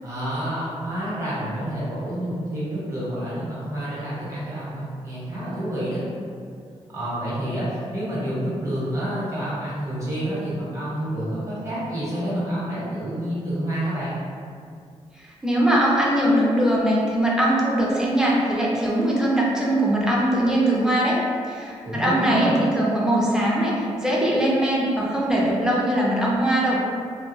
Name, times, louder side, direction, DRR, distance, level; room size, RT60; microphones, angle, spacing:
voice 1, 0.0-6.0 6.9-14.2 21.8-22.6, equal, 25° right, -9 dB, 1.1 m, -28 dB
voice 2, 15.2-26.8, right 1 dB, 5° right, -5 dB, 0.5 m, -21 dB
2.2 x 2.2 x 3.1 m, 2.2 s
cardioid pair, 110°, 12 cm